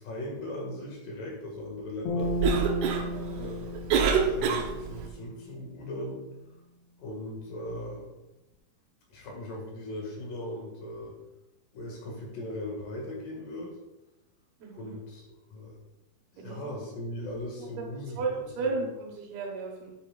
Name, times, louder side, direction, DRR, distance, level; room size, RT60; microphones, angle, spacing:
voice 1, 0.0-2.4 3.3-3.8 4.1-6.2 7.0-8.1 9.1-11.1 11.7-13.8 14.7-15.7 16.3-18.7, left 1 dB, 60° left, -1 dB, 3.3 m, -38 dB
sound 1, 2.1-5.4, left 1 dB, 90° left, 3.5 m, -34 dB
Cough, 2.2-5.1, right 6 dB, 90° right, 1.7 m, -27 dB
voice 2, 3.0-3.5 14.6-15.0 16.4-16.7 17.6-17.7 18.2-19.9, right 3 dB, 70° right, 0 dB, 3.1 m, -34 dB
9.8 x 8.4 x 2.4 m, 1.0 s
omnidirectional pair, 4.8 m